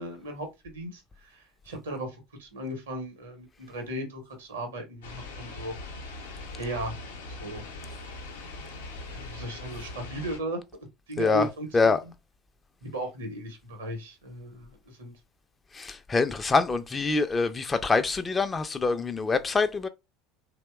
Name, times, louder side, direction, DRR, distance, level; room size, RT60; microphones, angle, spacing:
voice 1, 0.0-6.0 6.6-7.0 7.3-7.6 9.1-10.6 11.1-11.9 12.8-15.1, right 1 dB, 75° right, 0.7 m, -36 dB
sound 1, 5.0-10.4, left 2 dB, 75° left, 0.5 m, -41 dB
voice 2, 15.7-19.9, left 4 dB, 20° left, 0.3 m, -25 dB
2.7 x 2.1 x 2.2 m
figure-of-eight pair, 70°, 0 cm